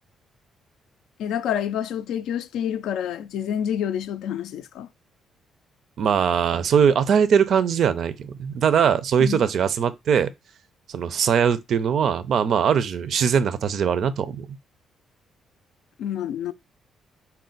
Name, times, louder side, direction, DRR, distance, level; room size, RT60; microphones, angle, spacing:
voice 1, 1.2-4.9 9.2-9.5 16.0-16.5, left 9 dB, 85° left, 0.3 m, -28 dB
voice 2, 6.0-10.3 10.9-14.5, right 7 dB, 65° right, 0.4 m, -21 dB
4.2 x 2.2 x 3.8 m
cardioid pair, 90°, 0 cm